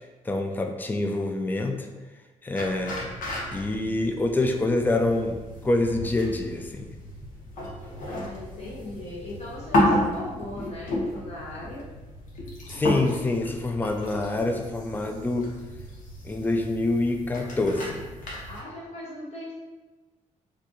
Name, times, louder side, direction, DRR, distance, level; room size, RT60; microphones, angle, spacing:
voice 1, 0.2-1.9 2.4-3.1 3.5-5.4 5.6-6.9 12.7-15.5 16.2-18.0, left 2 dB, 15° left, 4 dB, 0.3 m, -26 dB
sound 1, 2.5-18.6, left 1 dB, 80° left, 0.9 m, -32 dB
voice 2, 8.1-11.9 18.5-19.5, left 1 dB, 50° left, -5 dB, 0.8 m, -39 dB
4.6 x 2.3 x 3.0 m, 1.2 s
cardioid pair, 120°, 13 cm